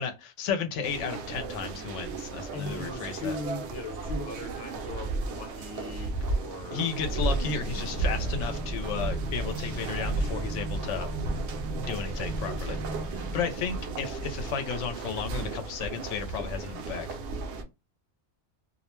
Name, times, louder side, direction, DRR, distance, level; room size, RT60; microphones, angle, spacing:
voice 1, 0.0-3.3 6.7-11.1 11.7-12.8 13.1-17.1, left 6 dB, 90° left, 0.9 m, -33 dB
sound 1, 0.8-17.6, right 3 dB, 70° right, 0.8 m, -34 dB
voice 2, 2.5-7.0, left 2 dB, 25° left, 0.7 m, -39 dB
sound 2, 6.8-15.1, right 1 dB, 40° right, 0.7 m, -36 dB
2.4 x 2.1 x 3.0 m
omnidirectional pair, 1.2 m